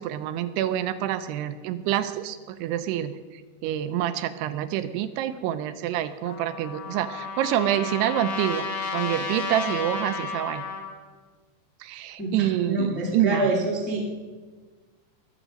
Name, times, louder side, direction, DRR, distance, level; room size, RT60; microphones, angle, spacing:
voice 1, 0.0-3.1 3.6-8.7 8.9-10.6 11.8-13.5, right 11 dB, 85° right, 11 dB, 2.6 m, -27 dB
Trumpet, 6.2-10.9, left 4 dB, 60° left, 2.6 m, -32 dB
voice 2, 12.2-14.1, right 2 dB, 15° left, -3 dB, 0.3 m, -27 dB
21.0 x 7.3 x 5.2 m, 1.4 s
omnidirectional pair, 4.9 m